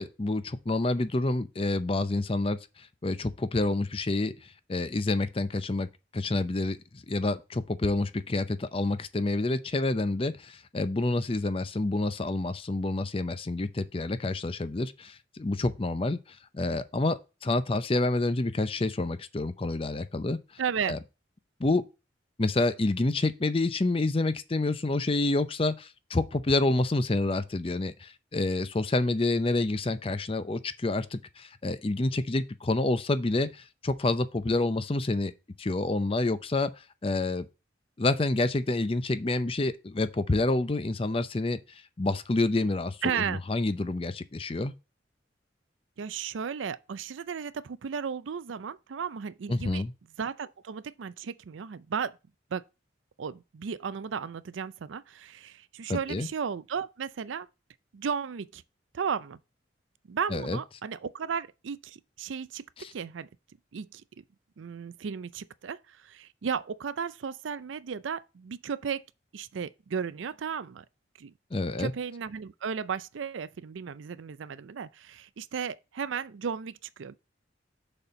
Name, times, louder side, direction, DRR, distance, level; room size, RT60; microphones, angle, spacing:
voice 1, 0.0-5.9 6.1-20.4 20.9-21.0 21.6-21.8 22.4-35.3 35.6-37.5 38.0-44.7 49.5-49.9 55.9-56.3 60.3-60.6 62.8-62.9 71.5-71.9, left 2 dB, 30° left, 0.5 m, -28 dB
voice 2, 20.6-21.0 43.0-43.4 46.0-49.8 50.2-52.2 52.5-52.6 53.2-57.5 57.9-58.6 58.9-59.4 60.1-63.3 63.7-64.2 64.6-69.0 69.3-70.8 71.2-71.3 71.8-77.2, right 6 dB, 85° right, 0.4 m, -34 dB
6.7 x 4.3 x 5.6 m
head